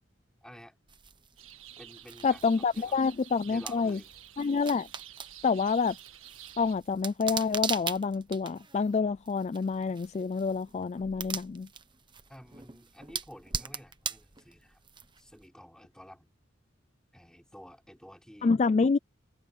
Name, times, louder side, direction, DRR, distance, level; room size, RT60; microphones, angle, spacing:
voice 1, 0.4-0.7 1.8-2.5 2.7-3.0 3.5-4.1 12.3-14.8 15.2-16.3 17.1-18.5, equal, 5° left, 3.9 m, -51 dB
sound 1, 0.9-15.4, right 6 dB, 25° right, 1.1 m, -41 dB
sound 2, 1.4-6.8, right 12 dB, 80° right, 1.8 m, -51 dB
voice 2, 2.2-4.0 4.4-4.9 5.4-6.0 6.6-11.7 18.4-19.0, left 4 dB, 30° left, 0.3 m, -27 dB
open air
head